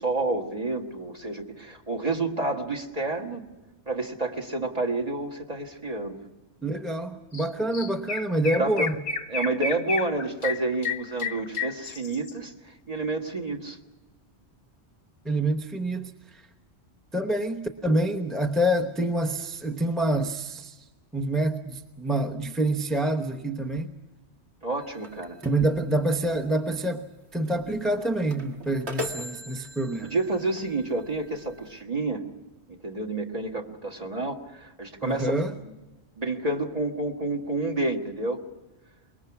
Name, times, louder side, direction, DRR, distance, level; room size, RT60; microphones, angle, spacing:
voice 1, 0.0-3.4 3.9-6.2 8.6-8.9 9.3-12.5 12.9-13.8 24.6-25.4 30.1-32.2 32.7-35.4 35.6-35.7 36.2-38.4, right 2 dB, 35° right, 2 dB, 1.8 m, -29 dB
voice 2, 6.6-9.0 15.2-16.4 17.1-20.8 21.1-23.9 25.4-27.0 27.3-30.1 35.0-35.5, right 1 dB, ahead, 5 dB, 0.8 m, -27 dB
Chirp tweet, 7.3-7.5 7.7-12.3, left 4 dB, 40° left, 0.9 m, -31 dB
sound 1, 24.8-31.8, left 1 dB, 65° right, 2.3 m, -41 dB
25.0 x 21.5 x 6.0 m, 1.1 s
omnidirectional pair, 1.2 m